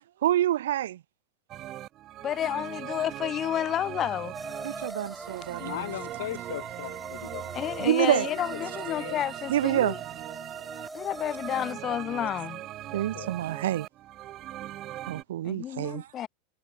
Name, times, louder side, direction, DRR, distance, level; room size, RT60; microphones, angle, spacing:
voice 1, 0.2-1.0 4.6-5.6 7.8-8.3 9.5-9.9 12.9-13.9 15.1-16.0, right 12 dB, 90° right, 0.6 m, -26 dB
sound 1, 1.5-15.2, right 14 dB, 30° right, 2.1 m, -40 dB
voice 2, 2.2-4.3 7.5-10.0 10.9-12.6 15.4-16.3, left 11 dB, 25° left, 3.2 m, -30 dB
sound 2, 4.3-11.8, right 2 dB, 5° right, 6.9 m, -42 dB
sound 3, 5.2-10.3, right 23 dB, 55° right, 6.9 m, -55 dB
voice 3, 5.6-7.5 8.3-9.2 12.9-13.3, left 14 dB, 75° left, 7.7 m, -39 dB
supercardioid pair, 165°, 0 cm